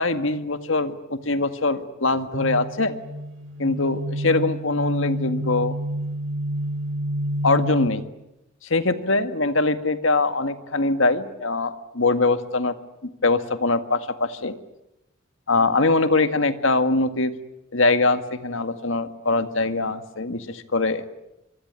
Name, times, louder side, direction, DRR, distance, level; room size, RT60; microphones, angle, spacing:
voice 1, 0.0-2.9 3.6-5.8 7.4-8.0 8.7-12.7 13.2-14.5 15.5-17.3 17.7-21.0, left 3 dB, 65° left, 10 dB, 1.9 m, -22 dB
sound 1, 2.3-7.9, right 1 dB, 65° right, 2.6 m, -28 dB
25.0 x 24.5 x 9.6 m, 0.92 s
head